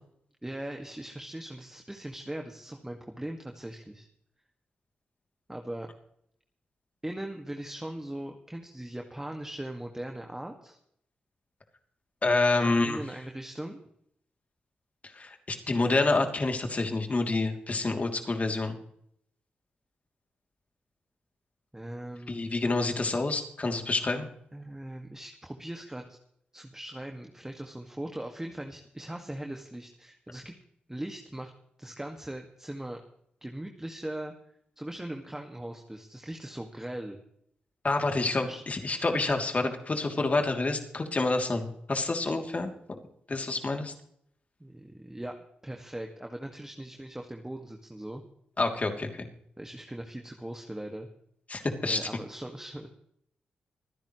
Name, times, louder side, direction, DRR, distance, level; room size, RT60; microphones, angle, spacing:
voice 1, 0.4-4.1 5.5-5.9 7.0-10.8 12.6-13.8 21.7-22.3 24.5-26.2 26.5-30.5 30.9-31.5 31.8-33.0 33.4-34.3 34.8-37.2 38.4-38.6 44.6-48.2 49.6-51.1 51.8-52.9, right 1 dB, 15° right, 3 dB, 2.0 m, -40 dB
voice 2, 12.2-13.0 15.1-18.7 22.3-24.3 37.8-43.0 43.3-43.9 48.6-49.3 51.5-52.0, left 3 dB, 40° left, 4 dB, 3.0 m, -28 dB
25.0 x 10.5 x 3.2 m, 0.70 s
supercardioid pair, 45°, 4 cm